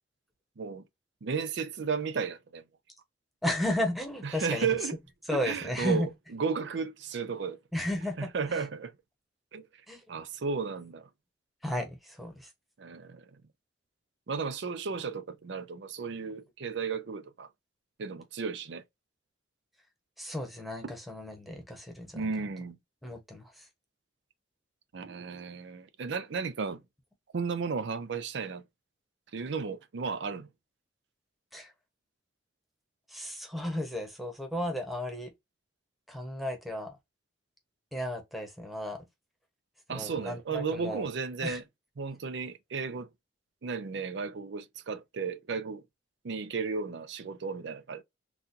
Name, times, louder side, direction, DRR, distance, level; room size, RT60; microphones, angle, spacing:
voice 1, 1.2-2.6 4.2-5.0 5.3-7.6 8.2-8.9 9.5-9.7 10.1-11.1 12.8-13.2 14.3-17.5 18.0-18.8 20.8-20.9 22.1-22.8 24.9-26.8 27.3-28.6 29.3-30.5 39.9-41.6 42.0-43.1 43.6-45.8 46.2-48.0, right 5 dB, 65° right, 0.5 m, -34 dB
voice 2, 3.4-4.7 5.3-6.1 7.7-8.6 9.9-10.0 11.6-12.5 20.2-22.3 23.0-23.7 31.5-31.7 33.1-35.3 36.1-37.0 37.9-39.0 39.9-41.1 41.4-41.6, left 1 dB, ahead, 1.0 m, -34 dB
4.1 x 2.3 x 2.6 m
head